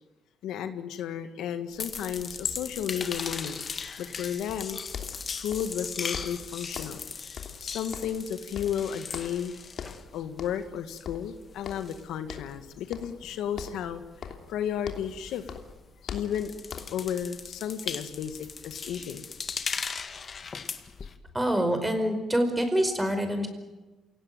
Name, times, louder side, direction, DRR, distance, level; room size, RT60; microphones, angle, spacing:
voice 1, 0.4-3.7 4.0-4.8 5.4-7.2 7.6-9.5 10.1-14.0 14.5-15.6 16.0-16.5 16.9-19.2 19.7-19.8 21.0-21.1, left 9 dB, 85° left, 9 dB, 1.8 m, -33 dB
sound 1, 1.7-10.6 10.9-15.9 16.2-21.1, left 5 dB, 40° left, 1.9 m, -38 dB
sound 2, 4.9-5.8 6.1-7.1 7.4-8.3 8.6-9.5 9.8-10.1 10.4-10.8 11.1-12.0 12.3-12.6 12.9-13.3 13.6-15.2 15.5-17.1, left 7 dB, 65° left, 3.1 m, -41 dB
voice 2, 21.3-23.5, equal, 10° right, 8 dB, 4.9 m, -26 dB
27.5 x 17.5 x 9.3 m, 1.1 s
cardioid pair, 90°, 0 cm